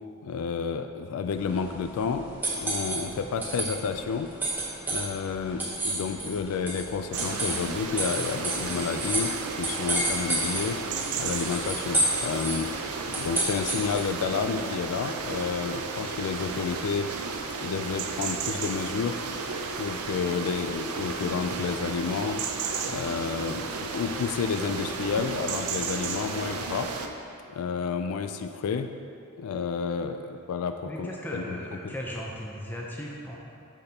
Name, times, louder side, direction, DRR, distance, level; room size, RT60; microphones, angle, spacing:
voice 1, 0.2-4.3 4.9-9.3 9.6-10.8 11.2-17.1 17.6-19.2 19.8-22.4 22.9-26.9 27.5-28.9 29.4-31.6 31.8-31.9, left 5 dB, 80° left, 7 dB, 0.3 m, -30 dB
sound 1, 1.3-14.2, right 1 dB, 10° right, 0.9 m, -32 dB
sound 2, 7.1-27.1, right 4 dB, 85° right, 0.5 m, -33 dB
voice 2, 30.8-33.4, equal, 10° left, -3 dB, 0.5 m, -37 dB
8.6 x 6.0 x 2.8 m, 2.6 s
head